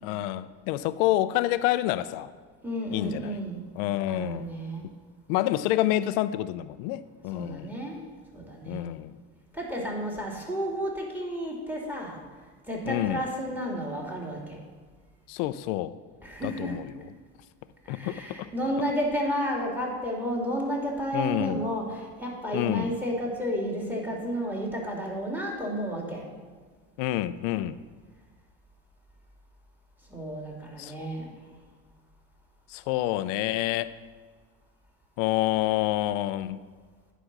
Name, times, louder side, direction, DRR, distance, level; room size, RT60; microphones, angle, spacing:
voice 1, 0.0-2.3 2.9-3.4 3.8-4.5 5.3-7.7 8.7-9.2 12.9-13.2 15.3-15.9 16.4-17.1 17.9-18.5 21.1-21.7 22.5-23.0 27.0-27.8 30.8-30.9 32.7-33.9 35.2-36.6, left 14 dB, 80° left, 14 dB, 0.6 m, -28 dB
voice 2, 2.6-3.6 4.0-4.8 7.3-8.0 8.3-8.9 9.5-12.2 12.7-14.6 16.2-16.8 17.9-26.3 30.1-31.3, equal, 5° right, -1 dB, 2.4 m, -32 dB
9.8 x 5.1 x 5.9 m, 1.5 s
supercardioid pair, 90°, 44 cm